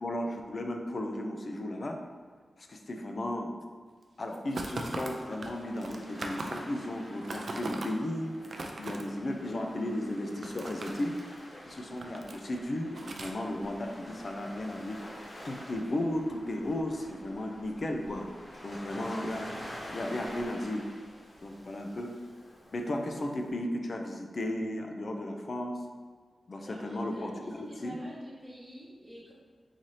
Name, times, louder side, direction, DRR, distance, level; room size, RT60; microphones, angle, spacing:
voice 1, 0.0-2.0 2.6-3.5 4.2-11.2 11.7-18.3 18.6-19.5 19.9-20.9 21.4-22.1 22.7-25.8 26.5-28.0, left 1 dB, 40° left, 3 dB, 0.4 m, -35 dB
sound 1, 4.3-6.8 7.1-7.9 8.3-9.0 10.1-11.4 11.8-12.6 12.9-13.3, right 2 dB, 55° right, 0.3 m, -39 dB
Waves surf, 4.7-23.5, left 1 dB, 75° left, 1.4 m, -48 dB
voice 2, 26.6-29.3, equal, 10° left, -11 dB, 1.0 m, -47 dB
3.9 x 2.7 x 3.1 m, 1.5 s
wide cardioid pair, 140°, 0 cm